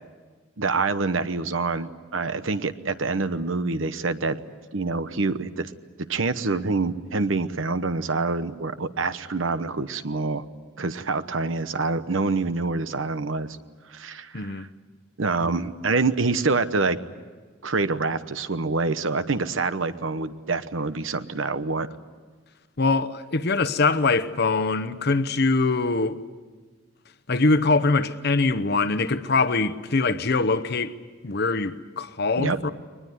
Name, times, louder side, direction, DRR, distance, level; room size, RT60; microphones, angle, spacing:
voice 1, 0.6-4.4 4.7-5.7 6.1-10.4 10.8-13.6 13.9-14.7 15.2-17.0 17.6-21.9 32.4-32.6, right 3 dB, 80° right, 1.0 m, -26 dB
voice 2, 14.3-14.7 22.8-26.2 27.3-30.9 31.2-32.7, left 3 dB, 55° left, 0.9 m, -23 dB
22.5 x 20.0 x 9.6 m
head